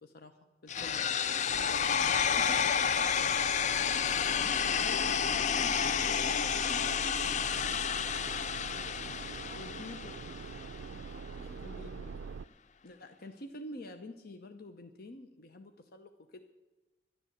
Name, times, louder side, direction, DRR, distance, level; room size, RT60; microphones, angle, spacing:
voice 1, 0.0-1.0 1.6-2.0 2.4-2.5 4.4-8.1 8.5-8.6 9.2-10.1 11.6-12.3 12.8-16.4, left 1 dB, 55° left, 6 dB, 0.8 m, -48 dB
sound 1, 0.7-10.7, left 7 dB, 40° left, 0.4 m, -30 dB
voice 2, 1.2-4.2 8.7-10.2 11.1-11.8, right 1 dB, 35° right, 1 dB, 3.7 m, -57 dB
sound 2, 1.5-12.4, right 5 dB, 80° right, 0.4 m, -44 dB
11.0 x 10.5 x 7.9 m, 1.1 s
head